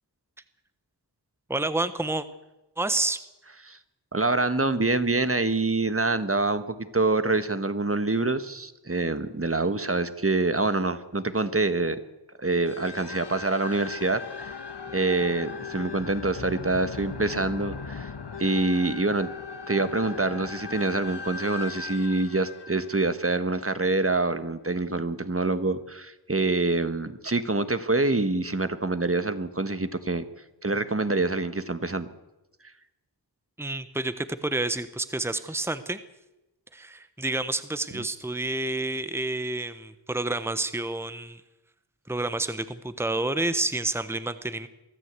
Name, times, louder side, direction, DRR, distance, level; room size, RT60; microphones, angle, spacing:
voice 1, 1.5-2.3 2.8-3.2 33.6-36.0 36.7-41.4 42.1-44.7, right 2 dB, 5° right, 12 dB, 1.1 m, -29 dB
voice 2, 4.1-12.0 12.4-14.5 14.9-18.1 18.4-19.3 19.7-30.2 30.6-32.1 37.9-38.0, right 3 dB, 35° right, 11 dB, 1.5 m, -26 dB
sound 1, 12.6-23.9, left 5 dB, 75° left, 1.4 m, -38 dB
23.5 x 14.0 x 8.3 m, 0.99 s
wide cardioid pair, 50°, 41 cm